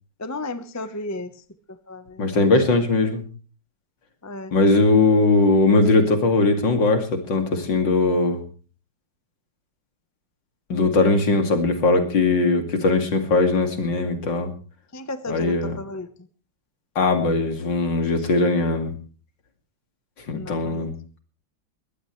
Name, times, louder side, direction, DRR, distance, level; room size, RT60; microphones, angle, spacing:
voice 1, 0.2-1.4 1.7-2.5 4.2-4.5 14.9-16.1 20.3-20.9, left 2 dB, 20° left, 11 dB, 0.4 m, -34 dB
voice 2, 2.2-3.2 4.5-8.4 10.7-14.5 15.3-15.8 17.0-18.9 20.3-20.9, left 3 dB, 60° left, 6 dB, 3.1 m, -20 dB
21.5 x 16.5 x 3.2 m, 0.38 s
omnidirectional pair, 2.3 m